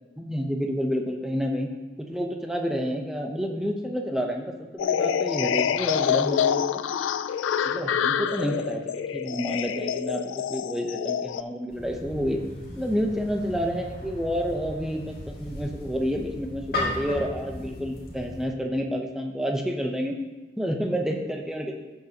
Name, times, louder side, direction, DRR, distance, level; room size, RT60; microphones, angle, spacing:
voice 1, 0.2-1.7 2.0-6.8 7.6-10.2 10.5-12.4 12.8-20.1 20.6-21.8, equal, 5° right, 1 dB, 0.7 m, -29 dB
sound 1, 4.8-11.4, left 8 dB, 90° left, 0.3 m, -26 dB
sound 2, 11.7-18.5, left 1 dB, 50° left, 2.3 m, -36 dB
15.5 x 6.6 x 2.8 m, 1.2 s
head